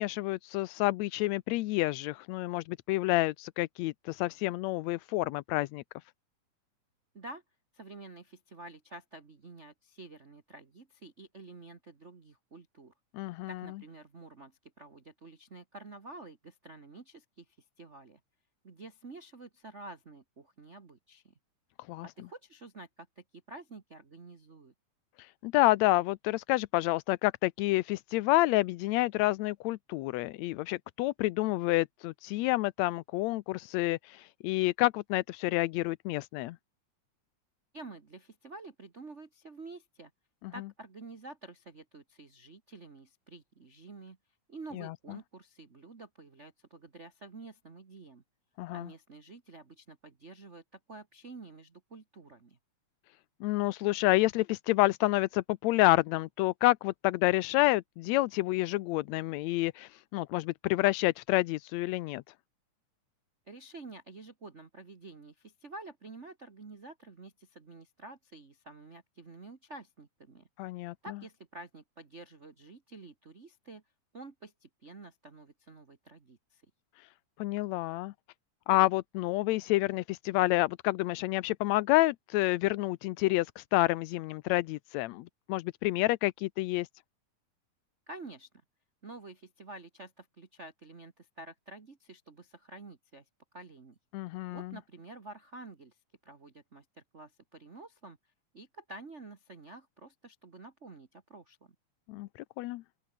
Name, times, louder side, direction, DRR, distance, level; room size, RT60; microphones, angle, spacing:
voice 1, 0.0-5.8 13.1-13.5 21.9-22.1 25.4-36.6 44.8-44.9 48.6-48.9 53.4-62.2 70.6-70.9 77.4-78.1 78.7-86.9 94.1-94.7 102.1-102.3 102.6-102.8, left 19 dB, 80° left, 1.6 m, -29 dB
voice 2, 7.7-12.9 13.5-17.5 17.8-18.2 18.6-21.3 22.0-24.7 37.7-40.1 40.5-44.2 44.5-48.2 48.7-52.6 63.5-70.5 71.0-73.8 74.1-76.6 88.1-88.5 89.0-93.2 93.5-94.0 94.5-96.0 96.2-98.2 98.5-101.7, right 3 dB, 35° right, 1.2 m, -49 dB
open air
omnidirectional pair, 3.6 m